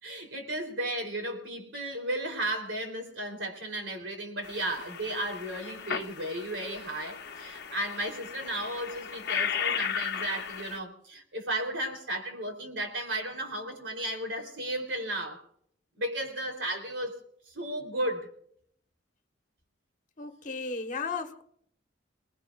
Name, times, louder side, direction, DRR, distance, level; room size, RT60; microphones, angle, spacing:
voice 1, 0.0-15.4 16.0-18.3, right 1 dB, 80° right, 3.5 m, -34 dB
sound 1, 4.4-10.8, left 7 dB, 60° left, 0.9 m, -35 dB
voice 2, 20.2-21.4, left 4 dB, 45° left, 1.3 m, -35 dB
29.0 x 19.5 x 2.5 m
head